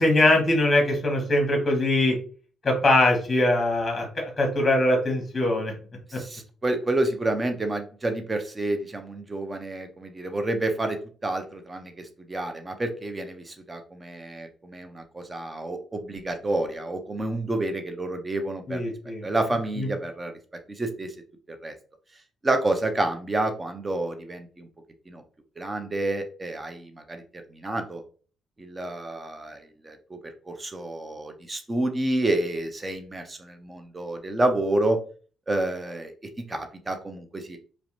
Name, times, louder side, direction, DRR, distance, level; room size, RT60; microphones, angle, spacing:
voice 1, 0.0-2.2 2.6-5.7 18.7-19.3 19.8-19.9, left 1 dB, 30° left, 1 dB, 0.9 m, -22 dB
voice 2, 6.1-11.0 11.2-18.8 19.2-20.3 20.8-21.1 21.6-21.7 22.4-24.7 25.1-25.2 25.6-27.2 27.5-28.0 28.6-29.6 29.8-30.0 30.5-35.0 35.5-36.1 36.5-37.6, right 2 dB, 25° right, 6 dB, 0.5 m, -29 dB
2.4 x 2.0 x 2.9 m, 0.40 s
cardioid pair, 90°, 0 cm